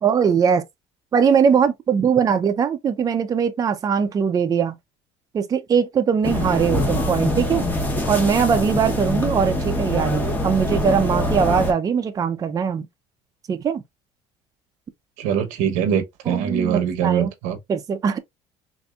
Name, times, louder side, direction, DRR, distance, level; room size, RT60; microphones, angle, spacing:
voice 1, 0.0-0.6 1.1-4.8 5.3-7.7 8.1-12.9 13.5-13.8 16.3-17.3 17.7-18.2, right 7 dB, 30° right, 0.5 m, -21 dB
sound 1, 6.2-11.7, left 1 dB, 15° left, 1.0 m, -24 dB
voice 2, 15.2-17.6, right 8 dB, 85° right, 0.9 m, -23 dB
4.0 x 2.6 x 2.3 m
cardioid pair, 120°, 12 cm